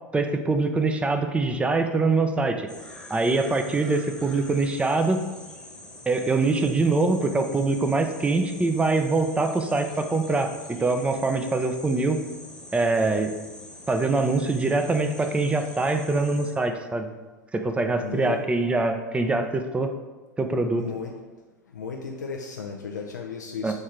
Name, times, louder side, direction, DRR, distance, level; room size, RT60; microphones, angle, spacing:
voice 1, 0.1-2.7 3.1-5.2 6.1-12.2 12.7-13.3 13.9-17.1 17.5-19.9 20.4-20.8 23.6-23.7, right 3 dB, 10° right, 6 dB, 0.6 m, -24 dB
sound 1, 2.7-16.5, left 1 dB, 5° left, 1.2 m, -44 dB
voice 2, 18.0-18.4 20.8-21.1 21.7-23.7, left 5 dB, 75° left, 1 dB, 0.6 m, -34 dB
6.6 x 3.6 x 4.5 m, 1.2 s
figure-of-eight pair, 85°, 10 cm